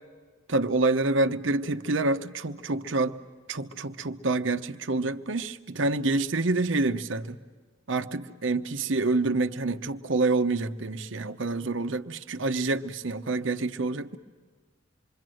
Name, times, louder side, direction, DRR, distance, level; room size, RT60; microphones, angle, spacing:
voice 1, 0.5-3.2 3.5-7.4 7.9-14.2, right 3 dB, 65° right, 8 dB, 0.9 m, -27 dB
27.0 x 23.5 x 7.8 m, 1.4 s
head